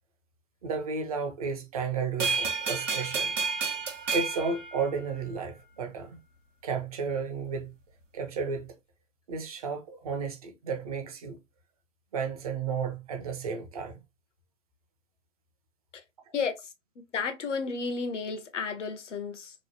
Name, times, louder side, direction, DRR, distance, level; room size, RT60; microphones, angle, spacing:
voice 1, 0.6-3.3 4.1-6.2 6.6-7.7 8.1-8.7 9.3-11.4 12.1-13.9, right 5 dB, 30° right, 0.5 m, -33 dB
sound 1, 2.2-5.4, right 5 dB, 80° right, 0.8 m, -31 dB
voice 2, 17.1-19.5, left 5 dB, 70° left, 0.8 m, -32 dB
3.0 x 2.1 x 2.7 m
figure-of-eight pair, 130°, 38 cm